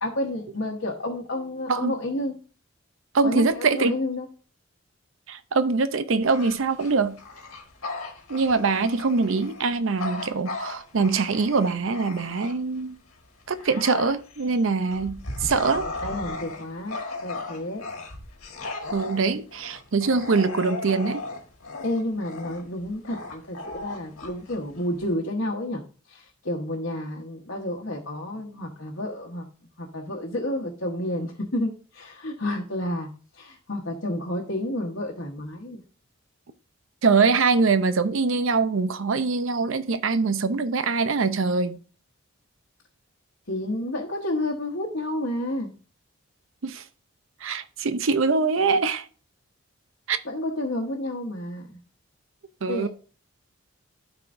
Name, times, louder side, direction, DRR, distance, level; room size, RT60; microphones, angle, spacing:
voice 1, 0.0-2.4 3.2-4.3 15.7-17.8 21.8-25.8 26.1-29.5 29.8-35.8 43.5-45.7 50.2-51.8 52.7-52.9, left 1 dB, 60° left, 1.2 m, -30 dB
voice 2, 3.1-3.9 5.3-7.2 8.3-12.9 13.5-15.9 18.9-21.2 37.0-41.8 46.6-46.8 47.4-49.1 50.1-50.2 52.6-52.9, right 4 dB, 65° right, 0.6 m, -23 dB
Bark / Growling, 6.2-12.8 13.2-25.1, left 3 dB, 90° left, 1.6 m, -36 dB
12.0 x 4.9 x 2.6 m
head